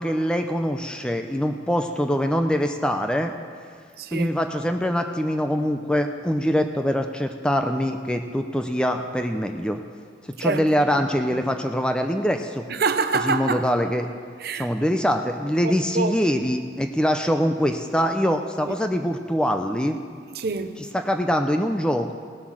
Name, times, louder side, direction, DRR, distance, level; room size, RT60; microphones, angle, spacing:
voice 1, 0.0-3.3 4.1-9.8 10.4-12.6 13.2-14.1 14.6-20.0 20.9-22.1, equal, 5° left, 5 dB, 0.5 m, -23 dB
voice 2, 4.0-4.4 10.4-10.6 11.0-11.4 12.7-13.6 14.4-14.7 15.6-16.2 18.7-18.8 20.3-20.8, right 4 dB, 55° right, 9 dB, 0.7 m, -26 dB
17.5 x 7.8 x 6.2 m, 2.1 s
head